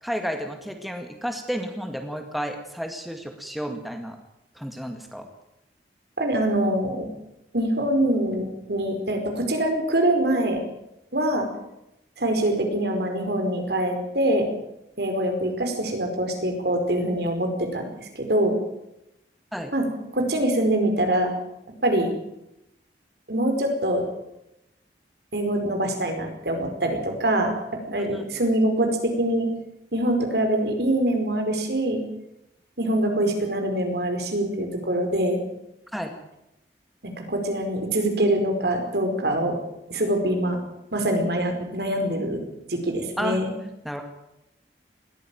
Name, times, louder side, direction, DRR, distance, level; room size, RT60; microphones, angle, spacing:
voice 1, 0.0-4.2 4.6-5.3 19.5-19.7 28.1-28.2 35.9-36.2 43.2-43.4 43.8-44.0, equal, ahead, 4 dB, 1.9 m, -31 dB
voice 2, 6.2-7.1 7.5-10.6 11.1-11.5 12.2-14.5 15.0-18.6 19.7-19.8 20.1-21.3 21.8-22.1 23.3-24.0 25.3-27.5 27.9-29.5 29.9-32.0 32.8-35.4 37.0-39.6 39.9-40.6 40.9-42.4 42.7-43.5, right 1 dB, 65° right, 4 dB, 4.9 m, -24 dB
20.5 x 14.5 x 9.1 m, 0.87 s
head